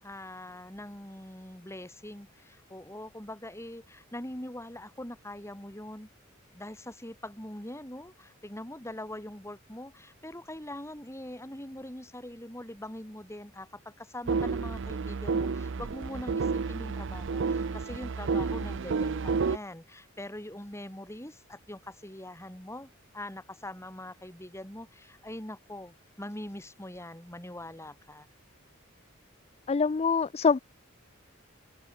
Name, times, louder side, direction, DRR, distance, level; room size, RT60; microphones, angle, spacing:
voice 1, 0.0-6.1 6.5-28.3, left 1 dB, 15° left, 4.6 m, -43 dB
sound 1, 14.3-19.6, right 4 dB, 65° right, 0.5 m, -30 dB
voice 2, 29.7-30.6, left 5 dB, 30° left, 0.4 m, -24 dB
open air
head